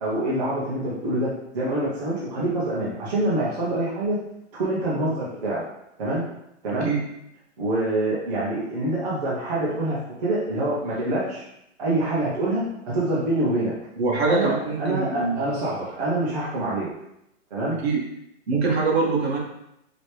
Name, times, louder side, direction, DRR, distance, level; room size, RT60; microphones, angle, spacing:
voice 1, 0.0-4.2 4.6-5.6 6.0-6.2 6.6-6.9 7.6-11.4 11.8-13.7 14.3-16.9 17.5-17.8, right 1 dB, 35° right, -7 dB, 0.9 m, -26 dB
voice 2, 14.0-15.4 17.8-18.0 18.5-19.4, right 3 dB, 55° right, -1 dB, 1.3 m, -23 dB
5.0 x 3.0 x 3.2 m, 0.82 s
hypercardioid pair, 175°, 38 cm